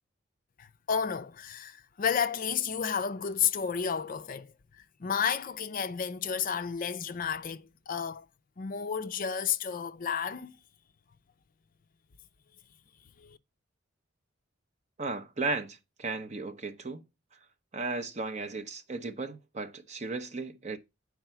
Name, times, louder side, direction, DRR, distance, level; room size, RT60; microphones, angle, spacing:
voice 1, 0.6-4.5 5.0-8.3 8.6-10.6 13.2-13.4, left 7 dB, 45° left, 0.5 m, -31 dB
voice 2, 15.0-17.0 17.7-20.8, right 3 dB, 35° right, 0.8 m, -35 dB
9.1 x 4.8 x 4.5 m
head